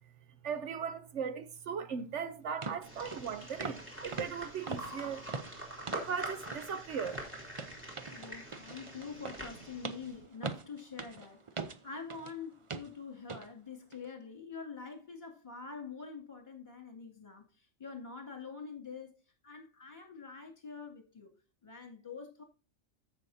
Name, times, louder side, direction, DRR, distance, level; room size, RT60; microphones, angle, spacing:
voice 1, 0.4-5.2 5.9-7.2, right 6 dB, 65° right, 1.0 m, -38 dB
sound 1, 2.0-2.1 2.6-2.8 3.1-3.3 3.6-3.9 4.1-6.2 6.5-6.7 7.0-12.3 12.7-12.9 13.3-13.5 13.9-14.1, right 4 dB, 35° right, 0.5 m, -42 dB
sound 2, 2.8-10.1, equal, 10° right, 3.0 m, -45 dB
voice 2, 8.1-17.4 17.8-19.2 19.4-21.3 21.6-22.4, left 5 dB, 25° left, 2.4 m, -46 dB
14.5 x 6.0 x 2.7 m
omnidirectional pair, 1.3 m